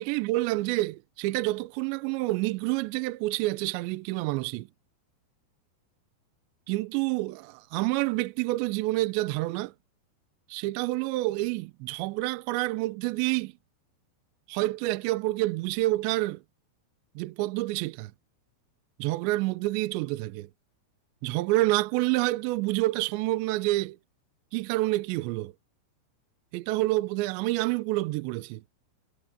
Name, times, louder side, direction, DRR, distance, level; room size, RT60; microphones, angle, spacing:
voice 1, 0.0-4.7 6.7-9.7 10.5-13.5 14.5-16.4 17.2-18.1 19.0-20.5 21.2-24.0 24.5-25.5 26.5-28.6, right 19 dB, 85° right, 2.6 m, -28 dB
omnidirectional pair, 5.9 m